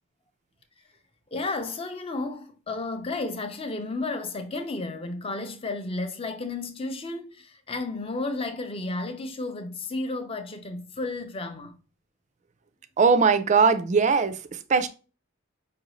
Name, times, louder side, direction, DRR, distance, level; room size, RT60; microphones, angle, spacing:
voice 1, 1.3-11.8, left 2 dB, 25° left, 0.5 m, -32 dB
voice 2, 13.0-14.9, right 5 dB, 35° right, 0.3 m, -20 dB
5.4 x 2.6 x 2.9 m
head